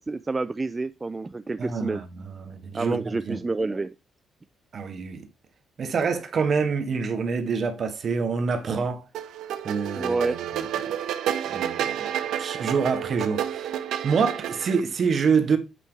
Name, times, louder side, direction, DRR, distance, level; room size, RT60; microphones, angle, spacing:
voice 1, 0.0-2.0 2.7-3.9 10.0-10.4, right 3 dB, 25° right, 0.3 m, -28 dB
voice 2, 1.6-2.1 2.4-3.0 3.3-3.4 4.7-5.2 5.8-9.0 9.6-10.4 11.5-12.1 12.4-13.7 14.0-15.6, right 5 dB, 50° right, 1.4 m, -26 dB
sound 1, 9.1-14.8, right 10 dB, 85° right, 0.7 m, -30 dB
8.4 x 3.5 x 4.6 m
cardioid pair, 90°, 0 cm